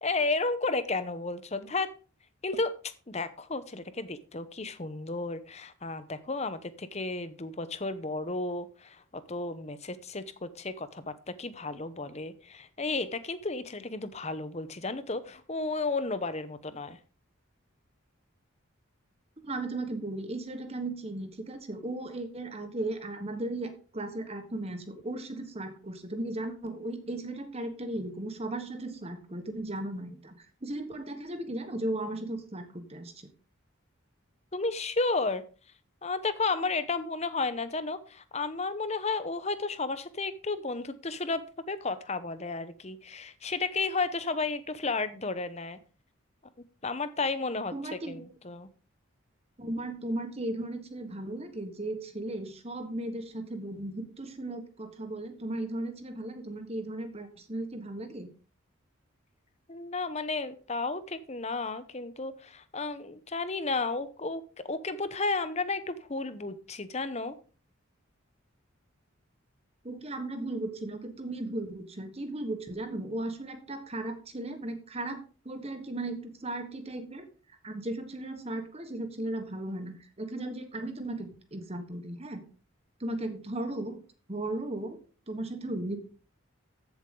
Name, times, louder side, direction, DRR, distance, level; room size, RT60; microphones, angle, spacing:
voice 1, 0.0-1.9 2.4-2.7 3.1-17.0 34.5-35.4 36.0-41.4 41.7-45.8 46.8-48.7 59.7-67.4, left 3 dB, 30° left, 13 dB, 0.8 m, -33 dB
voice 2, 19.4-30.3 30.6-33.1 47.7-48.3 49.6-58.3 69.8-77.3 77.6-82.4 83.0-84.0 84.3-85.0 85.3-86.0, right 1 dB, 30° right, 8 dB, 1.3 m, -36 dB
14.5 x 7.3 x 3.8 m, 0.37 s
head